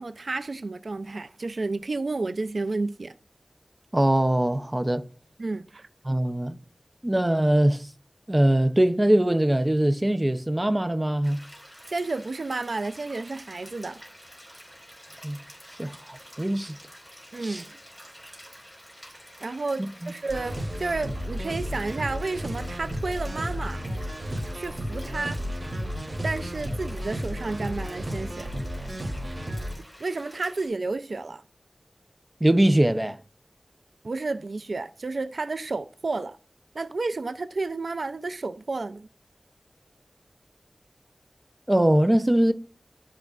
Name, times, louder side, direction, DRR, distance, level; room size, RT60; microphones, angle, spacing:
voice 1, 0.0-3.1 5.4-5.9 11.9-14.0 17.3-17.7 19.4-23.8 24.5-25.4 26.2-28.5 30.0-31.4 34.0-36.4 36.7-39.1, right 3 dB, 80° right, 0.4 m, -31 dB
voice 2, 3.9-5.1 6.0-6.6 7.0-7.9 8.3-11.4 15.2-15.4 15.8-16.8 17.4-17.6 19.8-20.1 32.4-33.2 41.7-42.5, right 1 dB, 25° right, 0.6 m, -22 dB
sound 1, 11.2-30.7, equal, 5° right, 4.5 m, -49 dB
sound 2, 20.3-29.7, equal, 55° right, 2.9 m, -33 dB
13.0 x 5.0 x 2.4 m
wide cardioid pair, 65°, 0 cm